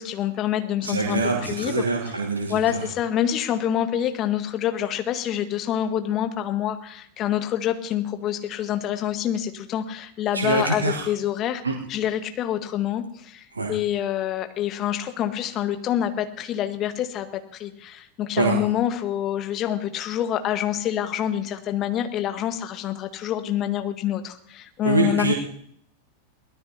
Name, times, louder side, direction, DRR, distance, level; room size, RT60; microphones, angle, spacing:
voice 1, 0.0-1.8 2.5-11.6 11.9-25.3, left 10 dB, 30° left, 8 dB, 1.4 m, -26 dB
voice 2, 0.8-2.9 10.3-11.1 11.6-11.8 13.5-13.7 18.4-18.6 24.8-25.3, right 3 dB, 75° right, 2 dB, 1.4 m, -24 dB
23.0 x 17.5 x 2.8 m, 0.67 s
figure-of-eight pair, 90°, 0 cm